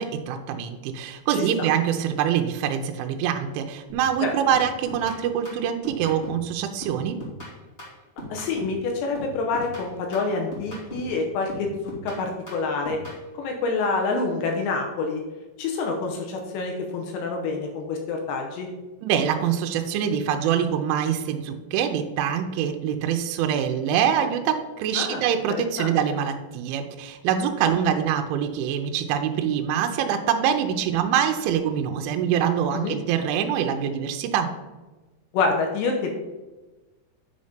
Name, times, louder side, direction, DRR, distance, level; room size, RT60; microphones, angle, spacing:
voice 1, 0.0-7.2 19.0-34.5, right 8 dB, 85° right, 5 dB, 3.1 m, -24 dB
sound 1, 3.9-4.2 4.5-6.5 6.8-8.8 9.1-11.2 11.5-13.2, equal, 25° left, 1.2 m, -39 dB
voice 2, 8.3-11.7 12.0-13.0 13.4-15.2 15.6-18.7 24.9-25.9 32.7-33.0 35.3-36.1, left 3 dB, 75° left, 2 dB, 2.8 m, -27 dB
9.6 x 4.1 x 5.0 m, 1.2 s
omnidirectional pair, 5.5 m